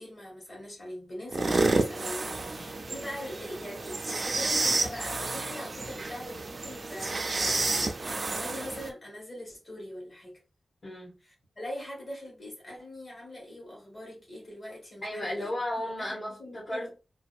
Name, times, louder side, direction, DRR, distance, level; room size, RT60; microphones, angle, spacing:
voice 1, 0.0-10.4 11.2-15.5 16.0-16.9, left 1 dB, 35° left, 1.3 m, -42 dB
sound 1, 1.3-8.9, right 3 dB, 40° right, 0.3 m, -30 dB
voice 2, 10.8-11.1 15.0-17.0, left 1 dB, 50° left, 0.9 m, -35 dB
2.6 x 2.2 x 2.4 m
wide cardioid pair, 175°, 0 cm